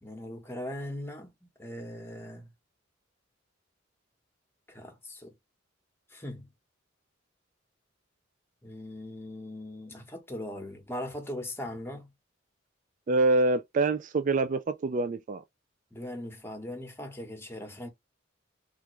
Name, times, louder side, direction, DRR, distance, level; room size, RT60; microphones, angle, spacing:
voice 1, 0.0-1.3 1.6-2.5 4.7-5.3 6.1-6.5 8.6-12.1 15.9-17.9, left 1 dB, 10° left, 1.0 m, -39 dB
voice 2, 13.1-15.4, right 2 dB, 40° right, 0.4 m, -25 dB
3.5 x 2.5 x 3.0 m
head